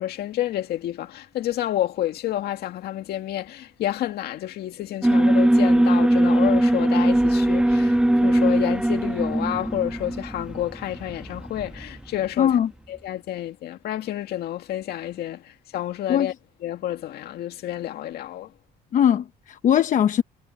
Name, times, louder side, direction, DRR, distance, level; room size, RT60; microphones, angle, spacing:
voice 1, 0.0-12.6 12.9-16.3 16.6-18.5, left 12 dB, 70° left, 2.1 m, -29 dB
Alarm, 5.0-12.1, right 1 dB, 5° right, 1.4 m, -20 dB
voice 2, 12.4-12.7 16.1-16.3 18.9-20.2, left 9 dB, 50° left, 0.8 m, -20 dB
cardioid pair, 110°, 17 cm